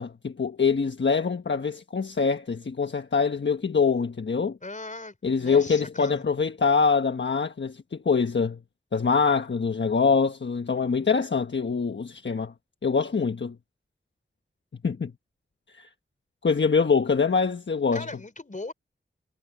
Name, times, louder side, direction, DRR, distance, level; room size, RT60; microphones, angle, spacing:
voice 1, 0.0-4.6 5.2-8.6 8.9-12.5 12.8-13.5 14.8-15.1 15.7-15.9 16.4-18.1, left 5 dB, 65° left, 1.3 m, -24 dB
voice 2, 4.6-6.2 17.9-18.7, left 2 dB, 40° left, 4.0 m, -38 dB
wide cardioid pair, 60°, 21 cm